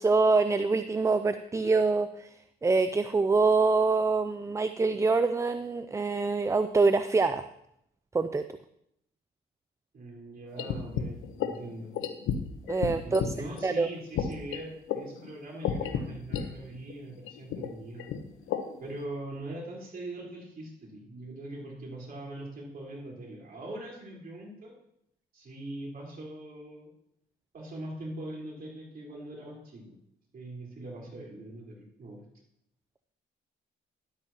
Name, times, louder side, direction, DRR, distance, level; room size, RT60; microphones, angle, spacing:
voice 1, 0.0-7.4 8.1-8.4 12.7-13.3 13.6-13.9, right 3 dB, 15° right, 11 dB, 0.4 m, -25 dB
voice 2, 9.9-11.9 12.8-18.1 18.8-24.7 25.3-26.9 27.5-30.0 30.3-32.2, right 1 dB, 50° right, -3 dB, 4.2 m, -42 dB
sound 1, 10.6-13.3 13.6-13.7 14.1-16.5 16.7-16.9 17.2-18.9, left 8 dB, 85° left, 0.9 m, -32 dB
12.5 x 11.5 x 2.9 m, 0.76 s
cardioid pair, 90°, 20 cm